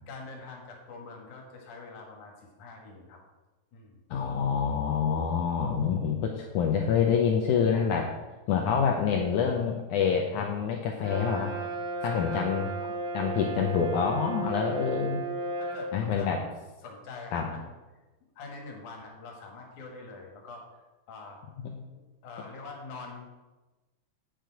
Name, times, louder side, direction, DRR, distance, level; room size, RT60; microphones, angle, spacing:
voice 1, 0.1-3.2 3.7-4.0 12.0-12.5 15.6-16.5 16.8-17.6 18.4-20.6 21.1-21.4 22.2-23.3, left 3 dB, 60° left, 1 dB, 2.6 m, -44 dB
voice 2, 4.1-8.1 8.5-11.5 12.0-12.7 13.1-15.2 15.9-16.4 17.3-17.5 21.6-21.8, left 7 dB, 85° left, 1 dB, 1.7 m, -27 dB
Brass instrument, 11.0-15.9, right 4 dB, 45° right, 1.3 m, -34 dB
8.9 x 6.6 x 4.6 m, 1.1 s
omnidirectional pair, 4.4 m